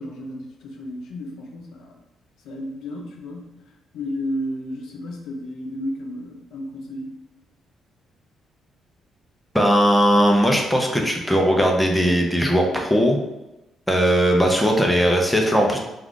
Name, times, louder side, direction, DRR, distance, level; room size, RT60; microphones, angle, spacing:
voice 1, 0.0-2.0 2.4-3.5 3.9-7.2, equal, 85° left, 0 dB, 0.5 m, -32 dB
voice 2, 9.5-13.2 13.9-15.8, equal, ahead, 1 dB, 0.5 m, -18 dB
2.4 x 2.4 x 3.6 m, 0.96 s
cardioid pair, 90°, 0 cm